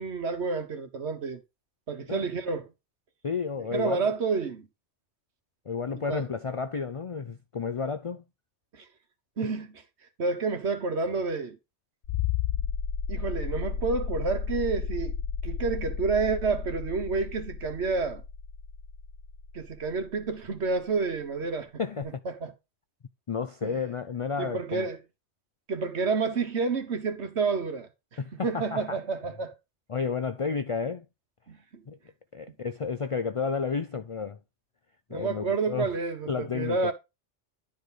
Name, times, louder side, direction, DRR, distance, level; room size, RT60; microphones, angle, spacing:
voice 1, 0.0-1.4 1.9-2.7 3.7-4.7 6.1-6.3 8.7-8.8 9.4-9.8 10.2-11.6 13.1-15.1 15.4-18.2 19.5-21.7 22.2-22.5 23.6-23.7 24.4-25.0 25.7-27.9 28.3-29.5 31.5-31.8 35.1-36.9, right 4 dB, 65° right, 1.5 m, -29 dB
voice 2, 3.2-4.1 5.7-8.2 21.8-22.2 23.3-24.9 28.2-29.0 29.9-31.1 31.9-32.0 32.3-34.4 35.1-35.9 36.3-36.9, left 5 dB, 50° left, 0.4 m, -31 dB
sound 1, 12.0-20.5 22.0-22.1, left 6 dB, 75° left, 1.1 m, -33 dB
10.5 x 5.0 x 3.9 m
omnidirectional pair, 1.2 m